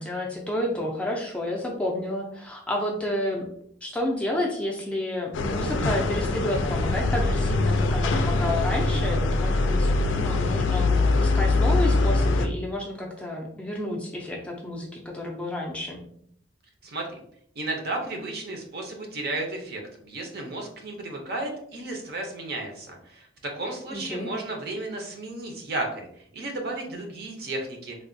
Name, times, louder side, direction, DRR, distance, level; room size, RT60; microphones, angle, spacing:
voice 1, 0.0-3.5 3.8-9.9 10.2-16.0 23.9-24.3, left 1 dB, 5° left, -2 dB, 0.4 m, -30 dB
sound 1, 5.3-12.5, left 2 dB, 75° left, 0.3 m, -23 dB
voice 2, 17.6-28.0, right 2 dB, 55° right, 2 dB, 0.7 m, -33 dB
3.3 x 2.3 x 2.5 m, 0.67 s
head